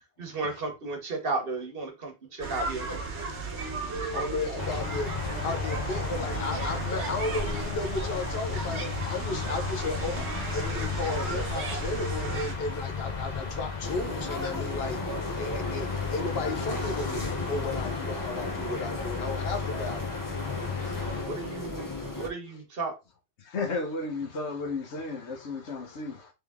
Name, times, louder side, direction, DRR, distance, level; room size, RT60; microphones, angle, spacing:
voice 1, 0.2-3.0 21.2-22.9, right 3 dB, 60° right, 1.3 m, -34 dB
sound 1, 2.4-12.5, right 4 dB, 85° right, 1.3 m, -35 dB
voice 2, 3.6-4.2 20.7-21.7 23.4-26.3, left 3 dB, 85° left, 1.3 m, -35 dB
voice 3, 4.1-5.1 5.4-10.3 10.5-15.0 15.4-20.1, left 3 dB, 65° left, 1.0 m, -34 dB
sound 2, 4.6-21.2, left 5 dB, 45° left, 0.9 m, -34 dB
sound 3, 13.8-22.3, left 1 dB, 20° left, 0.6 m, -36 dB
3.7 x 3.4 x 3.5 m
omnidirectional pair, 1.1 m